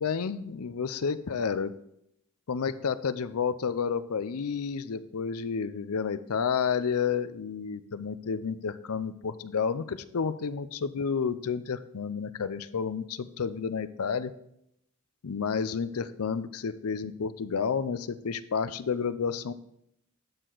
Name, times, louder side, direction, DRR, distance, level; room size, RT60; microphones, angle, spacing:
voice 1, 0.0-1.7 2.5-14.3 15.2-19.5, left 6 dB, 85° left, 14 dB, 0.5 m, -30 dB
12.0 x 6.6 x 3.9 m, 0.77 s
head